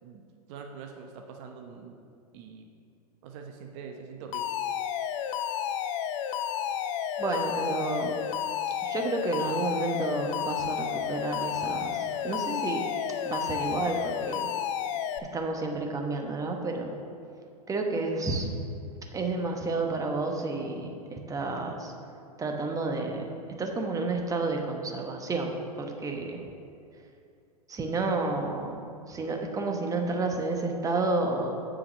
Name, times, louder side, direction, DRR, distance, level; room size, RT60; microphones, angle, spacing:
voice 1, 0.0-2.0 2.3-2.7 3.2-4.5, right 5 dB, 50° right, 3 dB, 0.8 m, -44 dB
Alarm, 4.3-15.2, left 9 dB, 50° left, 0.5 m, -31 dB
voice 2, 7.2-8.1 8.8-12.8 13.2-14.4 15.3-16.9 17.7-18.5 19.1-21.9 22.4-23.3 23.6-26.4 27.7-28.8 29.1-31.6, right 3 dB, 15° right, 3 dB, 1.0 m, -30 dB
7.0 x 5.1 x 6.3 m, 2.5 s
hypercardioid pair, 105°, 20 cm